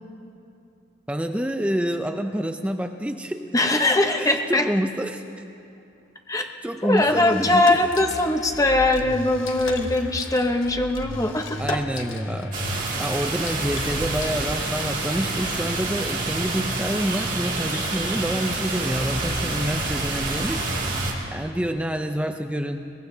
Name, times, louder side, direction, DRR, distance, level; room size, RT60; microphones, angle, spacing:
voice 1, 1.1-3.5 4.2-5.2 6.6-7.8 11.6-12.6 13.0-20.7 21.3-22.9, equal, 5° right, 6 dB, 0.4 m, -27 dB
voice 2, 3.5-4.7 6.3-6.5 6.8-11.8, left 2 dB, 15° left, 4 dB, 0.8 m, -21 dB
sound 1, 7.0-15.0, left 2 dB, 75° left, 1.2 m, -35 dB
sound 2, 12.5-21.1, right 2 dB, 40° right, 2.3 m, -27 dB
22.5 x 18.5 x 2.7 m, 2.7 s
head